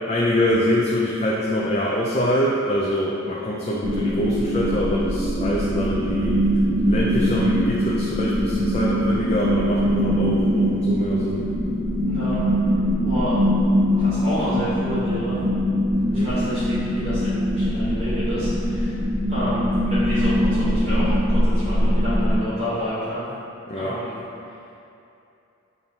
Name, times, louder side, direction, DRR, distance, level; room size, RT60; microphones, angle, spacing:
voice 1, 0.1-6.4 6.9-11.4 16.1-16.3 23.7-23.9, left 1 dB, 30° left, -5 dB, 0.3 m, -24 dB
sound 1, 3.8-22.4, equal, 10° right, 1.4 m, -22 dB
voice 2, 12.1-12.4 13.0-13.3 13.9-15.3 16.1-19.0 19.3-23.2 23.7-24.1, equal, 35° right, -14 dB, 1.4 m, -30 dB
6.8 x 2.6 x 2.8 m, 2.7 s
head